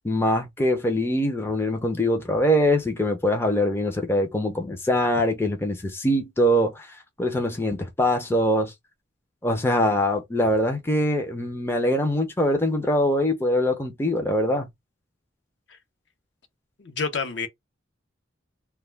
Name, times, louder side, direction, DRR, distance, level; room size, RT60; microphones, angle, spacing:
voice 1, 0.0-8.7 9.4-14.7, equal, 10° left, 0.4 m, -23 dB
voice 2, 16.8-17.5, left 5 dB, 60° left, 0.6 m, -28 dB
2.2 x 2.2 x 3.1 m
head